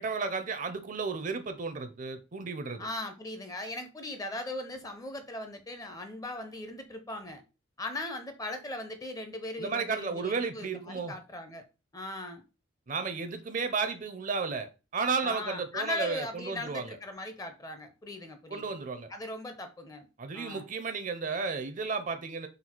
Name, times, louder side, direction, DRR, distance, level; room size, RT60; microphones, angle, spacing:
voice 1, 0.0-2.9 9.6-11.1 12.9-17.0 18.5-19.1 20.2-22.5, right 4 dB, 40° right, 0.5 m, -33 dB
voice 2, 2.8-7.4 7.8-11.6 11.9-12.4 15.2-18.6 19.1-20.1 20.3-20.7, left 2 dB, 20° left, 0.5 m, -39 dB
4.0 x 2.3 x 4.3 m
head